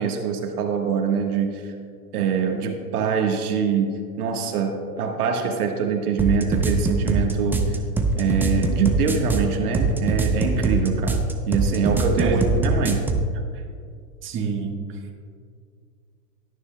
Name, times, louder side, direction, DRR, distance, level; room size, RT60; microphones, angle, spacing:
voice 1, 0.0-1.7 2.1-7.7 8.1-13.1, right 6 dB, 75° right, 3 dB, 1.4 m, -24 dB
sound 1, 6.2-13.3, right 2 dB, 5° right, 0.5 m, -22 dB
voice 2, 12.2-12.5 13.5-13.6 14.2-15.2, right 5 dB, 25° right, 1 dB, 1.4 m, -28 dB
17.0 x 10.0 x 2.2 m, 2.2 s
hypercardioid pair, 115°, 45 cm